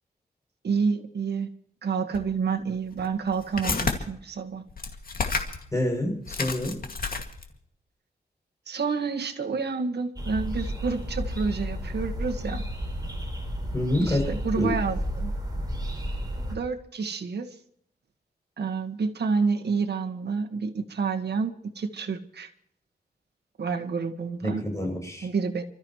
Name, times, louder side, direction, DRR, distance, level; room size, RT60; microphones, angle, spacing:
voice 1, 0.6-1.5 1.8-4.6 8.7-12.6 14.0-15.3 16.5-17.5 18.6-22.5 23.6-24.6 25.2-25.6, right 5 dB, 85° right, 5 dB, 1.7 m, -29 dB
sound 1, 2.1-2.3 2.9-4.0 4.7-5.7 6.0-6.1 6.3-7.6, left 4 dB, 60° left, 2.3 m, -30 dB
voice 2, 5.7-6.8 13.7-14.2 14.6-14.7 24.4-25.3, left 1 dB, 20° left, 1 dB, 7.4 m, -27 dB
sound 2, 10.2-16.6, equal, 25° right, 4.6 m, -32 dB
30.0 x 14.0 x 3.2 m, 0.67 s
wide cardioid pair, 100°, 17 cm